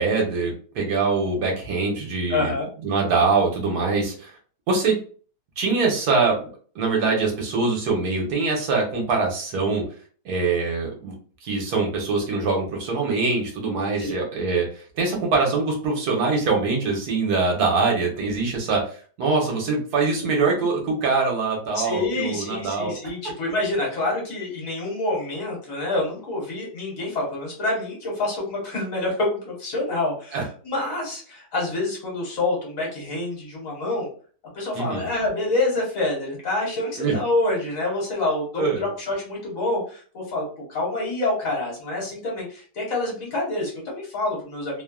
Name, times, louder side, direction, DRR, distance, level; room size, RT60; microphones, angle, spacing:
voice 1, 0.0-2.5 2.8-4.3 4.7-5.0 5.6-6.4 6.7-9.8 10.2-11.1 11.4-18.9 19.2-23.0 30.3-30.4 34.7-35.1 37.0-37.2 38.6-38.9, right 4 dB, 70° right, 0 dB, 1.3 m, -23 dB
voice 2, 2.3-2.7 14.0-14.1 21.7-34.1 34.5-40.4 40.7-44.8, left 2 dB, 55° left, -3 dB, 1.4 m, -27 dB
3.1 x 2.1 x 2.2 m, 0.42 s
omnidirectional pair, 1.8 m